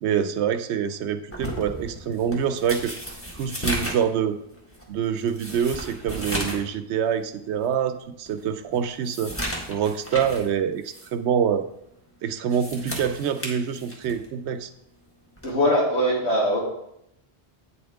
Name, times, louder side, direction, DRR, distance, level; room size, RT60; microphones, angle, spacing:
voice 1, 0.0-2.9 3.3-4.4 4.9-9.4 9.7-11.6 12.2-14.7, right 8 dB, 85° right, 11 dB, 0.9 m, -26 dB
sound 1, 1.3-6.7 7.1-7.2 7.7-7.8 8.3-10.5 10.9-11.1 12.3-14.3 15.4-15.6, equal, 10° left, 1.5 m, -34 dB
voice 2, 15.4-16.6, equal, 80° left, -4 dB, 3.0 m, -21 dB
8.7 x 7.1 x 3.5 m, 0.78 s
omnidirectional pair, 1.1 m